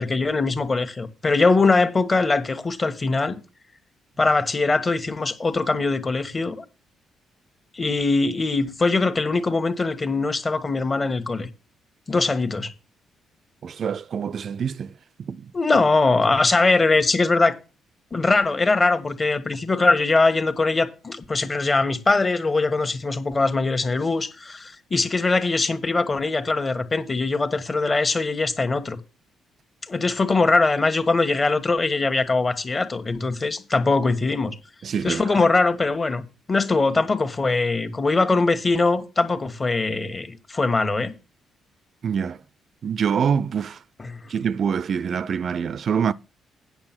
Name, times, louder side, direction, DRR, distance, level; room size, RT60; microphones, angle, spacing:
voice 1, 0.0-3.4 4.2-6.6 7.7-11.5 12.1-12.7 15.5-17.6 18.1-29.0 29.9-34.6 35.0-41.1 44.0-44.3, left 3 dB, 30° left, 1.4 m, -22 dB
voice 2, 13.6-14.9 15.2-15.5 34.8-35.5 42.0-42.4 42.8-43.8 44.3-46.1, right 7 dB, 55° right, 0.4 m, -25 dB
8.8 x 6.7 x 5.9 m
cardioid pair, 90°, 0 cm